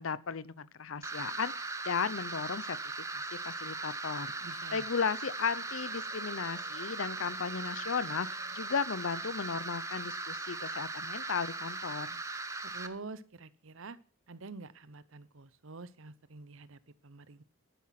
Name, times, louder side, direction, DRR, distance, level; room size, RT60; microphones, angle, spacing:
voice 1, 0.0-2.8 3.1-4.3 4.7-12.2, left 6 dB, 65° left, 19 dB, 0.7 m, -35 dB
sound 1, 1.0-12.9, right 3 dB, 15° right, 0.9 m, -39 dB
sound 2, 4.1-11.2, right 2 dB, 40° right, 3.1 m, -63 dB
voice 2, 4.4-4.9 12.6-14.0 14.3-17.4, right 3 dB, 60° right, 16 dB, 0.8 m, -47 dB
12.5 x 10.0 x 5.8 m, 0.39 s
head